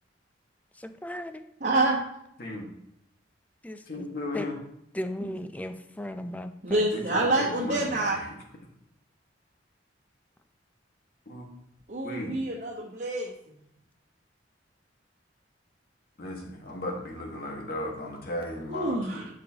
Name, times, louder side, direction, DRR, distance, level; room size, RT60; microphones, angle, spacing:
voice 1, 0.8-1.4 3.6-4.1 4.3-4.5 4.9-6.9, left 1 dB, 10° left, 8 dB, 0.4 m, -36 dB
voice 2, 1.6-2.0 5.2-5.4 6.6-8.2 11.9-13.3 18.7-19.3, right 2 dB, 50° right, -4 dB, 1.1 m, -27 dB
voice 3, 3.9-4.5 6.9-8.3 11.3-11.4 12.0-12.3 16.2-19.3, left 1 dB, 55° left, 1 dB, 1.6 m, -35 dB
11.0 x 5.5 x 2.9 m, 0.78 s
head